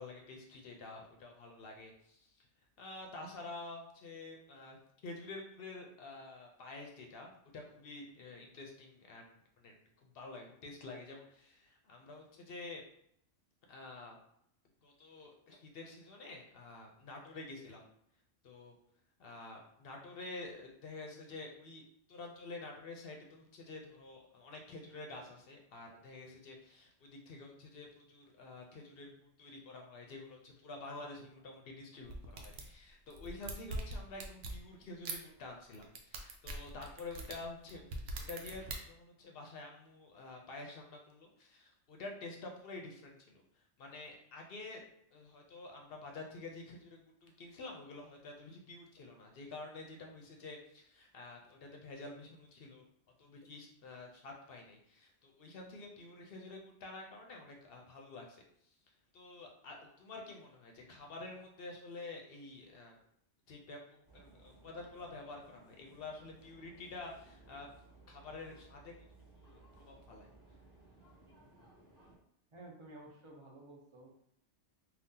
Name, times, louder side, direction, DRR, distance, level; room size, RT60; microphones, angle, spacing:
voice 1, 0.0-2.5 2.8-4.8 5.0-9.7 10.0-12.8 13.7-14.2 14.8-17.8 18.4-18.8 19.2-21.8 22.1-44.8 45.1-52.9 53.2-58.4 59.1-63.0 63.5-67.7 68.1-68.9 69.4-70.3, left 3 dB, 65° left, 1 dB, 0.7 m, -49 dB
sound 1, 32.1-32.7 33.1-34.6 35.0-35.2 35.7-38.8, right 2 dB, 70° right, 0.8 m, -42 dB
sound 2, 64.1-72.2, right 2 dB, 20° right, 1.1 m, -61 dB
voice 2, 72.5-74.1, right 2 dB, 40° right, -2 dB, 0.4 m, -53 dB
2.7 x 2.3 x 3.6 m, 0.72 s
omnidirectional pair, 1.2 m